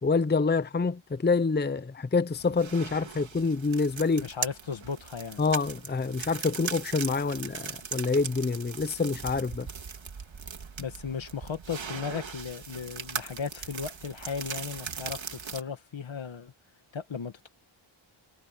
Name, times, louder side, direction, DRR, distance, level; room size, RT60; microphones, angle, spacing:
voice 1, 0.0-4.2 5.4-9.7, left 4 dB, 20° left, 0.7 m, -27 dB
sound 1, 2.3-15.6, right 6 dB, 65° right, 2.6 m, -39 dB
voice 2, 4.2-5.4 10.8-16.5 16.9-17.5, left 6 dB, 70° left, 2.0 m, -36 dB
wide cardioid pair, 75°, 49 cm